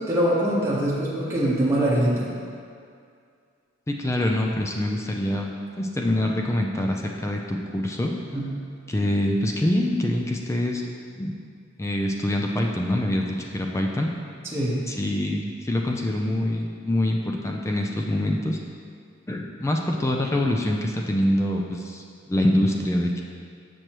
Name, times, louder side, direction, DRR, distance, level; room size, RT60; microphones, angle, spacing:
voice 1, 0.0-2.3 8.3-8.5 14.5-14.9, right 1 dB, 15° right, -8 dB, 1.0 m, -23 dB
voice 2, 3.9-8.1 8.9-10.8 11.2-11.4 11.8-14.1 14.9-18.6 19.3-23.2, left 1 dB, 15° left, 1 dB, 0.3 m, -25 dB
6.6 x 6.1 x 3.0 m, 2.3 s
head